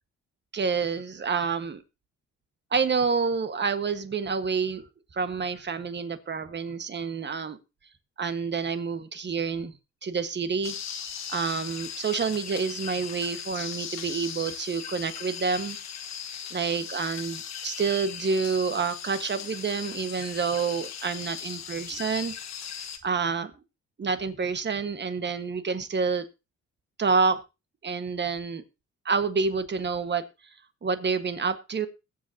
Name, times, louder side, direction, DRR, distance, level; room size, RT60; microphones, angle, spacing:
voice 1, 0.5-1.8 2.7-4.8 5.1-7.6 8.2-9.7 10.0-10.7 11.3-15.8 16.5-22.3 23.0-23.5 24.0-26.2 27.0-27.4 27.8-28.6 29.0-30.2 30.8-31.9, right 5 dB, 35° right, 10 dB, 1.5 m, -28 dB
sound 1, 10.6-23.0, left 8 dB, 60° left, 1.5 m, -38 dB
21.5 x 7.8 x 2.8 m, 0.27 s
cardioid pair, 90°, 30 cm